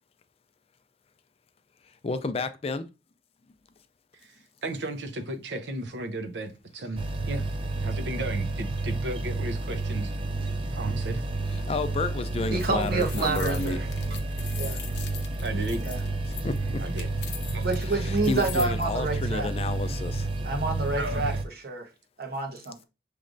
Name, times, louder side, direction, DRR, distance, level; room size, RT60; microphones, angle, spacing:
voice 1, 2.0-2.8 11.7-13.8 16.4-16.8 17.9-20.3, left 3 dB, 35° left, 0.4 m, -31 dB
voice 2, 4.1-7.5 7.8-10.1 10.7-11.3 15.4-15.9 16.8-17.1 17.5-17.7 20.9-21.4, right 1 dB, 80° right, 0.7 m, -35 dB
sound 1, 7.0-21.4, right 2 dB, 30° right, 0.5 m, -30 dB
sound 2, 12.5-18.9, left 9 dB, 75° left, 0.7 m, -42 dB
voice 3, 12.5-13.9 14.5-14.8 15.8-16.0 17.6-19.5 20.4-21.3 21.6-21.9 22.2-22.8, right 3 dB, 60° right, 1.0 m, -28 dB
6.1 x 3.2 x 2.5 m
head